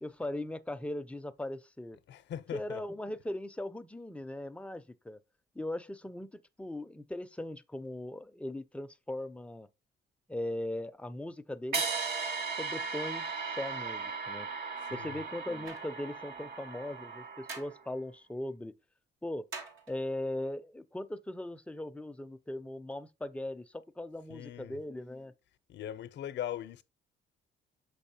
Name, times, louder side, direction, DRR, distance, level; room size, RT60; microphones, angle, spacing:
voice 1, 0.0-2.0 2.5-5.2 5.5-9.7 10.3-12.1 12.6-14.5 14.9-18.8 19.2-19.5 19.9-25.3, left 1 dB, 5° left, 0.4 m, -39 dB
voice 2, 2.1-2.8 14.9-15.2 24.3-24.8 25.7-26.8, left 10 dB, 65° left, 0.6 m, -40 dB
sound 1, 11.7-17.9, right 4 dB, 50° right, 1.4 m, -37 dB
sound 2, 15.6-16.0 17.5-17.8 19.5-20.1, right 4 dB, 90° right, 1.4 m, -44 dB
6.4 x 5.4 x 2.8 m
cardioid pair, 90°, 20 cm